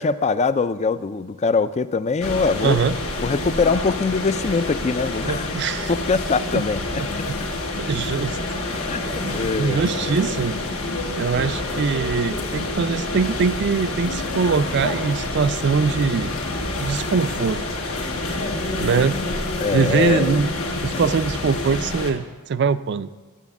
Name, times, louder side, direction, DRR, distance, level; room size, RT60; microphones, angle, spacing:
voice 1, 0.0-2.8 3.2-5.5 5.9-6.8 8.8-10.1 11.3-11.8 19.6-20.4, left 4 dB, 30° left, 14 dB, 0.4 m, -23 dB
sound 1, 2.2-22.1, left 2 dB, 75° left, 1.6 m, -28 dB
voice 2, 2.6-2.9 5.2-5.9 6.5-6.6 7.0-7.1 7.8-8.4 9.2-10.6 11.1-16.3 16.8-17.6 18.8-19.2 19.7-20.5 20.8-23.1, right 5 dB, 50° right, 14 dB, 0.4 m, -22 dB
12.0 x 6.9 x 7.1 m, 1.3 s
head